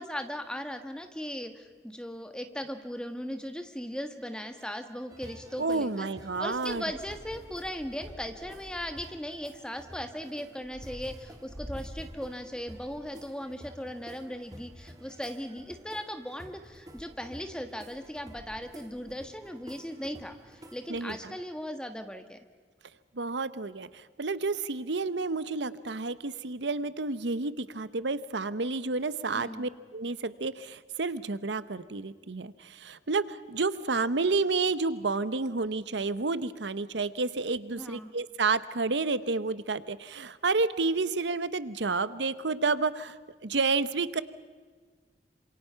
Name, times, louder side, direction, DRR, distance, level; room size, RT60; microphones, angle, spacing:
voice 1, 0.0-6.1 6.4-22.4 29.3-29.6 37.7-38.1, equal, 5° left, 7 dB, 1.5 m, -38 dB
sound 1, 5.1-21.3, equal, 20° right, 1.8 m, -48 dB
voice 2, 5.6-6.8 20.9-21.4 23.1-44.2, right 3 dB, 90° right, 15 dB, 0.9 m, -30 dB
27.5 x 26.5 x 5.7 m, 1.5 s
head